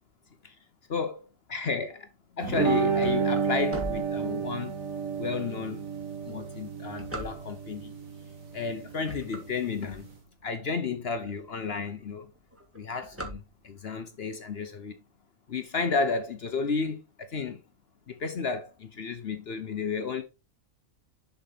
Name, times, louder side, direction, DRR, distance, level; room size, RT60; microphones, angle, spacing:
voice 1, 0.9-1.9 2.4-4.7 5.2-5.8 6.2-8.0 8.5-10.1 10.4-12.3 12.7-15.0 15.5-17.6 18.1-20.2, left 5 dB, 55° left, 0.9 m, -32 dB
sound 1, 2.4-10.1, right 6 dB, 80° right, 2.1 m, -31 dB
sound 2, 3.0-4.8 5.4-5.5 6.1-7.8 8.5-8.7 9.0-10.5 11.0-11.1 11.3-11.4 11.7-12.1 12.3-14.0, right 1 dB, 10° right, 1.4 m, -40 dB
7.1 x 5.6 x 3.9 m
omnidirectional pair, 1.4 m